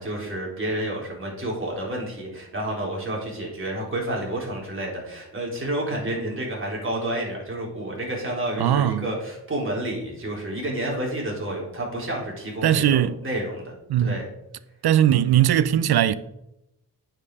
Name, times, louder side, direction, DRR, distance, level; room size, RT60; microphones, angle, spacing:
voice 1, 0.0-13.7 14.0-14.2, right 1 dB, 30° right, 4.0 m, -30 dB
voice 2, 8.6-9.1 12.6-13.1 13.9-14.2 14.8-16.1, right 11 dB, 70° right, 0.6 m, -19 dB
8.7 x 7.7 x 4.9 m
wide cardioid pair, 110°, 39 cm